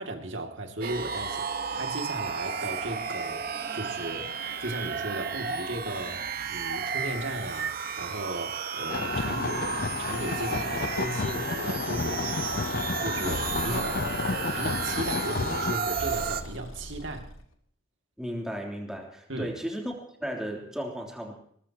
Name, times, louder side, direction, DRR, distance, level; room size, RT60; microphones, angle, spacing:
voice 1, 0.0-4.3 4.6-12.7 13.0-14.1 14.5-17.3 19.3-19.6, right 1 dB, 70° right, 3 dB, 2.5 m, -36 dB
sound 1, 0.8-16.4, right 6 dB, 45° right, 1.3 m, -33 dB
sound 2, 8.9-15.8, left 4 dB, 45° left, 0.6 m, -31 dB
Breathing, 12.3-17.4, left 1 dB, 90° left, 2.4 m, -42 dB
voice 2, 18.2-19.9 20.2-21.3, equal, 5° right, 0 dB, 3.2 m, -34 dB
21.5 x 21.5 x 3.0 m, 0.63 s
head